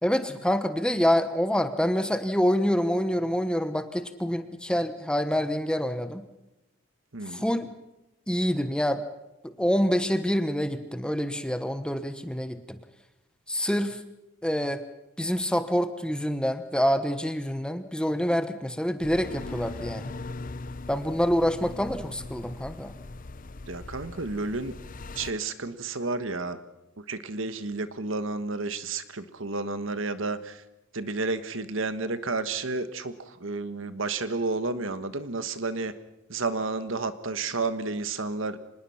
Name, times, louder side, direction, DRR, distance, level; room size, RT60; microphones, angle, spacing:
voice 1, 0.0-6.2 7.3-7.7 8.3-9.0 9.4-12.8 13.5-14.0 14.4-14.8 15.2-20.1 20.9-22.9, equal, 5° left, 10 dB, 1.1 m, -26 dB
voice 2, 7.1-7.5 23.7-24.7 25.1-26.6 27.0-30.6 30.9-35.9 36.3-38.6, right 3 dB, 70° right, 11 dB, 1.4 m, -31 dB
sound 1, 19.0-25.3, left 3 dB, 40° left, 0.7 m, -40 dB
25.0 x 20.0 x 5.8 m, 0.94 s
head